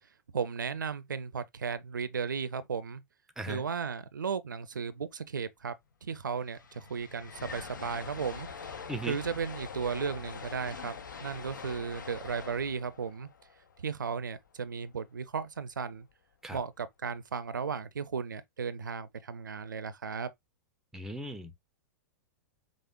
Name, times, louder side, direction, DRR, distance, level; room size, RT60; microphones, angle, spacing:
voice 1, 0.3-3.0 3.5-5.7 6.0-8.5 9.1-10.9 11.2-13.3 13.8-16.1 16.5-20.3, right 6 dB, 85° right, 0.4 m, -35 dB
sound 1, 5.9-6.0 6.2-14.4, left 6 dB, 85° left, 0.6 m, -44 dB
voice 2, 20.9-21.5, right 1 dB, 5° right, 0.6 m, -37 dB
5.0 x 2.0 x 2.2 m
hypercardioid pair, 105°, 10 cm